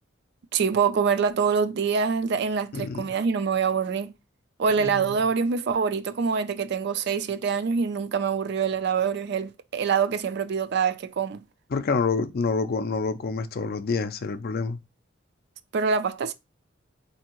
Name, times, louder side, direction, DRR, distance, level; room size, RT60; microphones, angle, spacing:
voice 1, 0.5-4.1 4.6-11.4 15.7-16.3, right 6 dB, 55° right, 0.4 m, -25 dB
voice 2, 2.7-3.0 4.7-4.9 11.7-14.8, left 4 dB, 50° left, 0.4 m, -27 dB
4.3 x 2.8 x 2.9 m
head